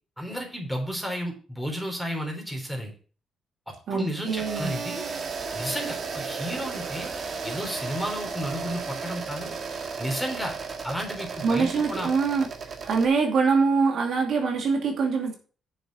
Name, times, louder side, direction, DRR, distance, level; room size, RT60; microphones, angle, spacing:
voice 1, 0.2-2.9 3.7-5.1 5.5-7.1 7.4-9.6 10.0-10.5 10.8-12.1, equal, ahead, 2 dB, 3.8 m, -32 dB
voice 2, 3.9-4.8 11.4-12.5 12.8-15.4, right 4 dB, 65° right, 2 dB, 2.5 m, -24 dB
sound 1, 4.3-13.1, right 4 dB, 45° right, 2.1 m, -34 dB
7.0 x 6.7 x 6.4 m, 0.39 s
cardioid pair, 90°, 0 cm